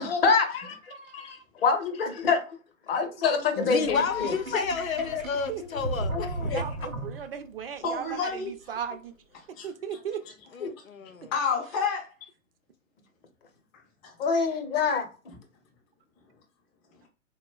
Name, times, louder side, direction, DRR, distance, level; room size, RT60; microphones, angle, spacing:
voice 1, 0.0-2.4 2.9-4.6 5.1-5.2 6.1-6.6 10.6-10.7 14.2-15.1, left 5 dB, 45° left, 0.7 m, -26 dB
voice 2, 3.6-6.4 10.5-11.3, left 5 dB, 85° left, 0.6 m, -31 dB
Sink (filling or washing), 3.8-7.6, right 2 dB, 85° right, 0.7 m, -35 dB
voice 3, 6.5-9.1 9.6-10.2, right 8 dB, 45° right, 0.4 m, -36 dB
voice 4, 7.8-8.5 9.5-9.7 11.2-12.1 13.7-14.1 15.3-15.4, left 5 dB, 10° left, 0.4 m, -30 dB
4.0 x 2.1 x 2.3 m
figure-of-eight pair, 115°, 40 cm